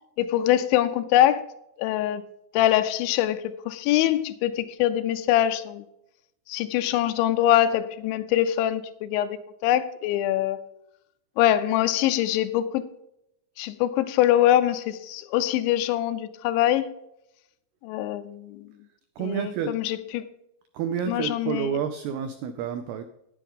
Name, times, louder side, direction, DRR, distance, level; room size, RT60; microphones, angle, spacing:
voice 1, 0.2-1.5 1.8-2.2 2.5-5.8 6.5-10.6 11.4-12.9 13.6-16.9 17.8-18.6 19.2-20.2 21.1-21.7, left 12 dB, 85° left, 2.9 m, -23 dB
voice 2, 19.2-19.7 20.7-23.0, right 8 dB, 85° right, 2.2 m, -29 dB
10.0 x 10.0 x 3.6 m
omnidirectional pair, 5.3 m